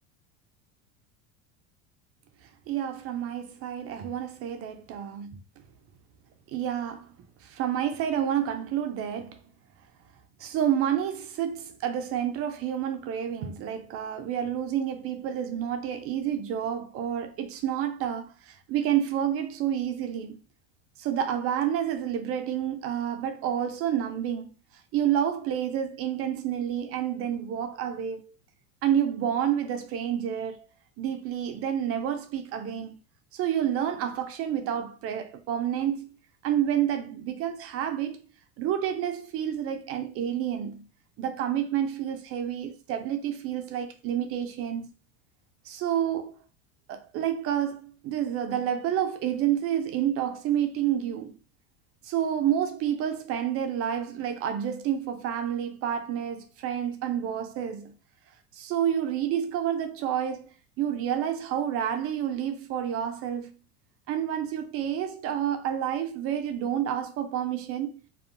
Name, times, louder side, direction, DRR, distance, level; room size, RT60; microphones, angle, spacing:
voice 1, 2.7-5.4 6.5-7.1 7.4-9.4 10.4-20.4 21.0-24.5 24.9-28.3 28.8-30.7 31.0-33.0 33.3-36.2 36.4-38.2 38.6-40.9 41.2-44.9 45.6-46.4 46.9-51.4 52.0-57.9 58.5-60.5 60.8-63.5 64.1-68.0, right 10 dB, 45° right, 0.5 m, -29 dB
2.6 x 2.3 x 2.5 m
supercardioid pair, 105°, 34 cm